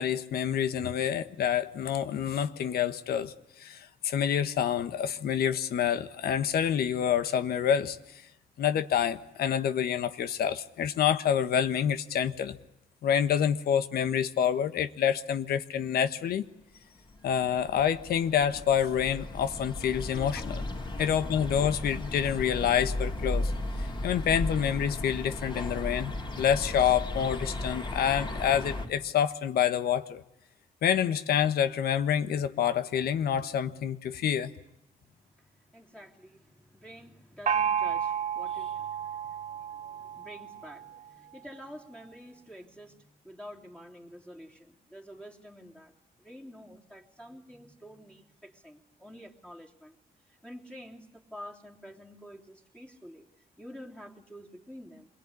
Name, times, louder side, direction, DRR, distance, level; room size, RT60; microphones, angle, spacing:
voice 1, 0.0-3.3 3.6-8.0 8.6-12.6 13.0-16.4 17.2-20.6 21.0-23.5 23.8-30.2 30.8-34.5, left 9 dB, 75° left, 11 dB, 1.4 m, -27 dB
sound 1, 17.0-28.9, left 2 dB, 30° left, 3.9 m, -35 dB
voice 2, 35.4-45.9 46.2-50.0 50.4-53.3 53.6-55.1, equal, 5° left, -1 dB, 3.2 m, -48 dB
Gong, 37.5-41.0, right 8 dB, 50° right, 1.3 m, -31 dB
27.5 x 22.0 x 9.9 m, 0.83 s
cardioid pair, 145°, 16 cm